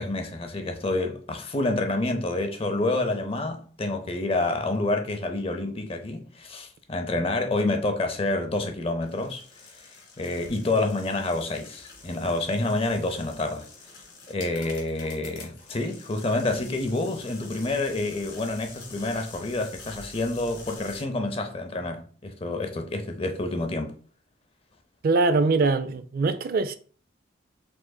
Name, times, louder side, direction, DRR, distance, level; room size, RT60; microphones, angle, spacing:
voice 1, 0.0-9.9 10.2-13.7 14.3-23.9, left 2 dB, 30° left, 0.5 m, -28 dB
sound 1, 9.0-21.0, left 3 dB, 65° left, 1.8 m, -47 dB
voice 2, 25.0-26.8, right 3 dB, 45° right, 0.3 m, -22 dB
4.8 x 3.8 x 2.2 m
head